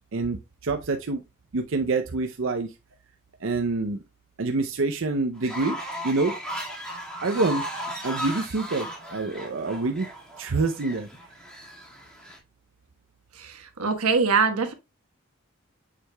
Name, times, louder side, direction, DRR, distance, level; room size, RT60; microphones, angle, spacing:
voice 1, 0.1-1.2 1.5-2.7 3.4-4.0 4.4-5.8 6.0-6.4 7.2-7.6 8.0-10.1 10.4-11.1, right 3 dB, 60° right, 0.6 m, -26 dB
Fowl, 5.4-12.4, equal, 5° left, 1.9 m, -36 dB
voice 2, 13.3-14.7, right 5 dB, 85° right, 1.3 m, -23 dB
7.3 x 6.5 x 2.3 m
head